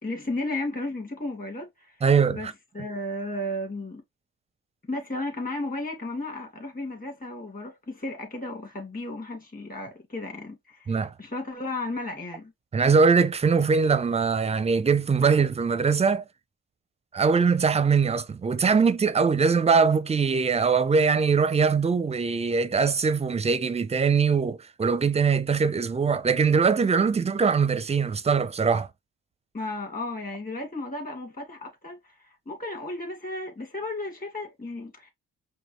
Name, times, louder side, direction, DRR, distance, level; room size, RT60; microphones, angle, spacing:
voice 1, 0.0-2.0 2.3-4.0 4.9-12.5 29.5-35.1, left 2 dB, 30° left, 2.2 m, -34 dB
voice 2, 2.0-2.4 10.9-11.1 12.7-16.2 17.1-28.9, right 5 dB, 20° right, 0.5 m, -22 dB
5.2 x 2.2 x 3.1 m
cardioid pair, 90°, 30 cm